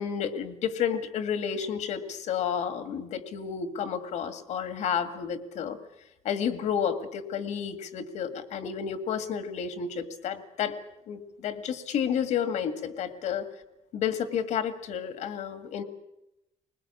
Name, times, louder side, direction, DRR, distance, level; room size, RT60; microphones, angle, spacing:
voice 1, 0.0-5.8 6.2-10.8 11.1-13.5 13.9-15.8, left 8 dB, 70° left, 10 dB, 2.0 m, -31 dB
21.0 x 20.5 x 8.6 m, 0.89 s
cardioid pair, 165°, 12 cm